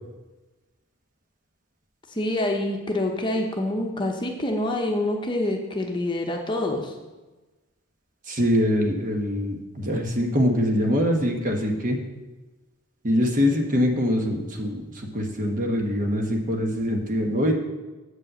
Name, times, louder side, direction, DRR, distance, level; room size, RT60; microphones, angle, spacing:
voice 1, 2.1-7.0, left 1 dB, 20° left, 1 dB, 0.9 m, -26 dB
voice 2, 8.3-12.0 13.0-17.5, equal, 40° right, 2 dB, 1.2 m, -23 dB
8.1 x 5.4 x 7.5 m, 1.2 s
head